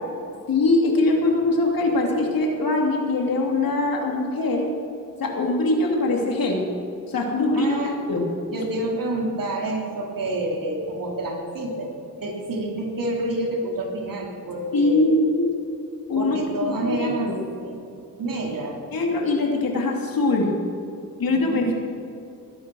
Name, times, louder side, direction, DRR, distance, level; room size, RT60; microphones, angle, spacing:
voice 1, 0.5-4.7 5.2-6.6 7.1-7.7 8.1-8.2 14.7-15.5 16.1-17.4 18.9-20.5 21.2-21.7, left 2 dB, 85° left, 1 dB, 2.8 m, -22 dB
voice 2, 7.6-8.0 8.5-11.9 12.2-15.1 16.2-17.3 17.6-17.8 18.2-18.8 21.2-21.7, right 1 dB, 70° right, 0 dB, 3.5 m, -28 dB
20.5 x 10.5 x 6.2 m, 2.8 s
wide cardioid pair, 90°, 34 cm